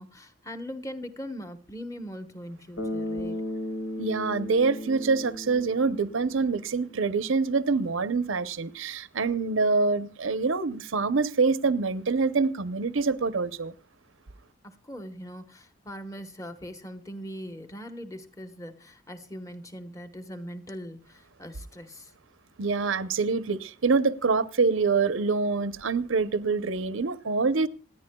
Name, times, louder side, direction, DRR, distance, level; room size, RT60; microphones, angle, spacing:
voice 1, 0.0-3.4 14.6-22.1, equal, 15° left, 1.0 m, -41 dB
Bass guitar, 2.8-7.0, left 1 dB, 90° left, 4.2 m, -35 dB
voice 2, 4.0-13.7 22.6-27.7, right 4 dB, 75° right, 0.7 m, -25 dB
27.0 x 10.0 x 2.3 m
head